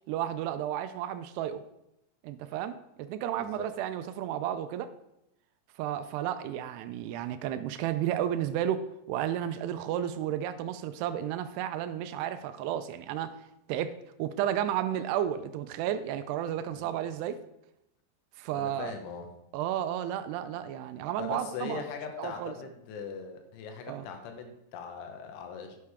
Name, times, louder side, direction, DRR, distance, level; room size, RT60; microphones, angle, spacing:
voice 1, 0.1-1.6 2.2-4.9 5.8-13.4 13.7-17.4 18.4-18.9 19.5-21.8 22.2-22.5 23.9-24.0, right 10 dB, 85° right, 10 dB, 2.4 m, -32 dB
voice 2, 3.4-3.7 16.7-17.0 18.5-19.3 21.2-25.8, left 5 dB, 85° left, 5 dB, 3.6 m, -40 dB
11.0 x 8.4 x 3.5 m, 0.83 s
omnidirectional pair, 5.3 m